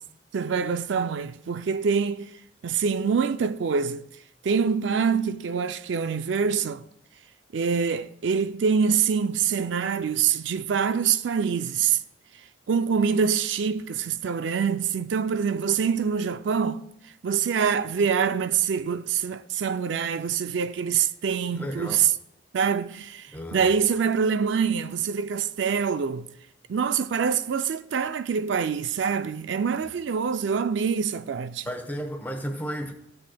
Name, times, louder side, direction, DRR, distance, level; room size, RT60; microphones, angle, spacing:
voice 1, 0.3-2.3 2.6-4.0 4.4-6.8 7.5-12.0 12.7-16.8 17.2-22.1 22.5-26.3 26.7-31.7, right 6 dB, 75° right, 0.4 m, -25 dB
voice 2, 21.5-22.0 23.3-23.6 31.6-32.9, equal, 10° left, 0.9 m, -33 dB
15.0 x 7.7 x 2.3 m
head